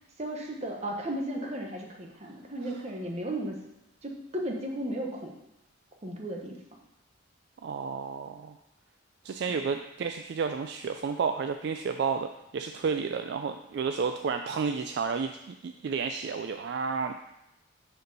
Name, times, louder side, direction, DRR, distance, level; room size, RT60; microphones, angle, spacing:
voice 1, 0.2-3.6 4.0-5.4 6.0-6.6 9.5-9.6, right 1 dB, 35° right, 1 dB, 1.0 m, -35 dB
voice 2, 7.6-8.6 9.2-12.3 12.5-17.1, right 5 dB, 55° right, 6 dB, 0.3 m, -31 dB
6.6 x 4.4 x 5.3 m, 0.87 s
head